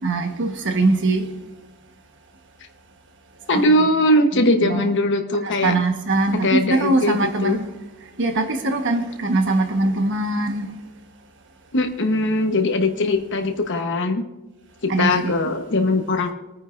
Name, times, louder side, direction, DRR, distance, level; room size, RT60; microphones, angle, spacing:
voice 1, 0.0-1.3 3.5-3.6 4.3-4.8 5.4-7.7 8.2-10.7 14.9-15.3, right 2 dB, 55° right, 1.3 m, -22 dB
voice 2, 3.5-5.8 6.3-7.6 11.7-14.2 14.8-16.3, left 1 dB, 55° left, 1.1 m, -20 dB
25.5 x 9.5 x 2.6 m
head